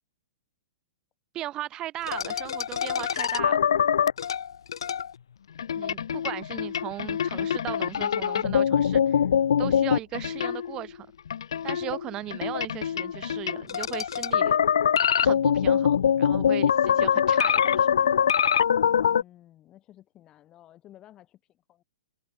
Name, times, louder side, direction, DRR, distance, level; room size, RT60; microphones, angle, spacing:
voice 1, 1.3-3.7 5.7-9.2 9.6-11.1 11.6-14.6 15.2-18.1, right 14 dB, 30° right, 2.8 m, -37 dB
sound 1, 2.1-5.1 5.6-10.9 11.3-19.2, left 8 dB, 70° left, 0.9 m, -24 dB
voice 2, 18.8-21.8, left 13 dB, 25° left, 6.0 m, -53 dB
figure-of-eight pair, 115°, 3 cm